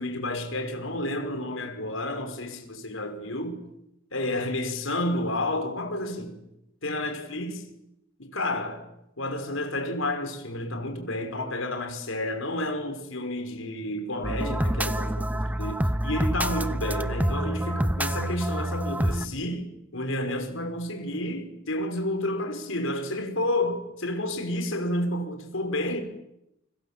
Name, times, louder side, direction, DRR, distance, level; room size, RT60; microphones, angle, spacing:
voice 1, 0.0-3.6 4.1-6.4 6.8-7.7 8.2-8.8 9.2-19.7 19.9-26.0, left 1 dB, 80° left, 5.5 m, -30 dB
sound 1, 14.2-19.3, right 1 dB, 10° right, 1.0 m, -27 dB
29.0 x 25.5 x 7.6 m
head